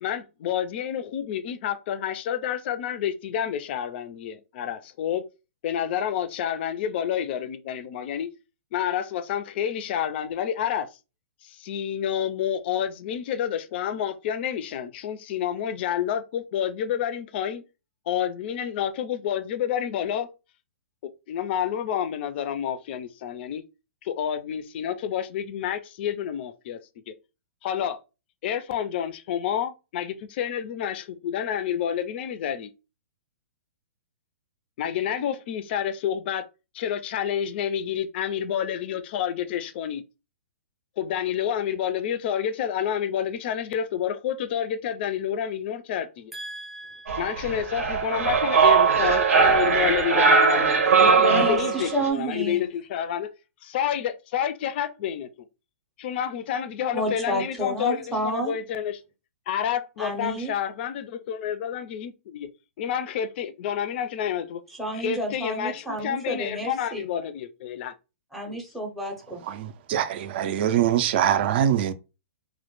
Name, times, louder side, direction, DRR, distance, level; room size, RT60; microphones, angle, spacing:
voice 1, 0.0-5.2 5.6-8.3 8.7-10.9 11.4-17.6 18.1-20.3 21.3-23.6 24.0-26.8 27.1-27.2 27.6-28.0 28.4-32.7 34.8-36.4 36.7-40.0 41.0-46.3 47.2-50.7 51.0-53.3 53.6-55.3 56.0-59.0 59.5-62.5 62.8-64.6 64.9-67.9 68.5-68.6, left 9 dB, 50° left, 0.4 m, -29 dB
voice 2, 46.3-47.4 51.3-52.6 56.9-58.6 60.0-60.5 64.7-67.1 68.3-69.4, right 1 dB, ahead, 0.6 m, -30 dB
sound 1, 47.1-52.1, right 5 dB, 85° right, 0.8 m, -20 dB
voice 3, 69.5-71.9, right 10 dB, 50° right, 0.4 m, -23 dB
2.1 x 2.1 x 3.0 m
hypercardioid pair, 135°, 8 cm